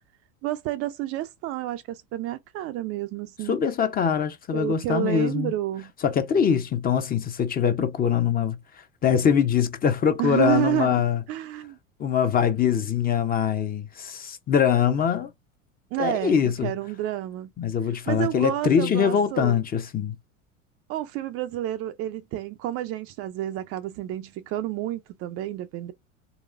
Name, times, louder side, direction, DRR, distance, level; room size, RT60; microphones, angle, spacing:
voice 1, 0.4-3.6 4.5-5.9 10.2-10.9 11.3-11.8 15.9-17.5 18.1-19.6 20.9-25.9, right 14 dB, 40° right, 0.4 m, -30 dB
voice 2, 3.5-5.5 6.0-11.2 12.0-15.3 16.0-16.7 17.6-20.2, left 8 dB, 25° left, 0.6 m, -23 dB
4.0 x 2.4 x 2.4 m
hypercardioid pair, 85°, 40 cm